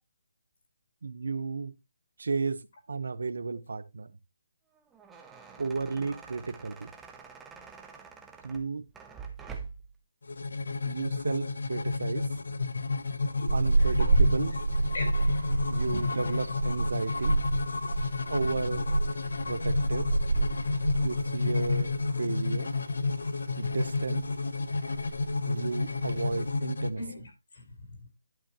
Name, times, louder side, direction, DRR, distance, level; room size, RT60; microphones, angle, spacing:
voice 1, 1.0-1.7 2.2-4.1 5.6-6.9 8.4-8.8 10.8-12.2 13.5-14.6 15.7-17.4 18.0-18.9 19.5-20.1 21.0-21.9 22.2-22.7 23.6-24.3 25.4-27.0, right 4 dB, 65° right, 0.9 m, -33 dB
sound 1, 4.7-10.0, right 5 dB, 5° right, 0.7 m, -46 dB
sound 2, 10.2-26.9, left 3 dB, 75° left, 0.9 m, -31 dB
sound 3, 13.5-22.0 22.2-22.5 22.9-23.7 24.0-24.4 24.7-24.8 24.9-25.4 25.9-26.4, right 3 dB, 85° right, 1.6 m, -28 dB
voice 2, 13.8-14.2 14.9-16.4 17.0-17.1 17.8-18.4 18.9-19.0 19.3-19.7 27.0-28.1, left 2 dB, 50° left, 4.5 m, -42 dB
11.0 x 7.5 x 2.9 m
hypercardioid pair, 175°, 0 cm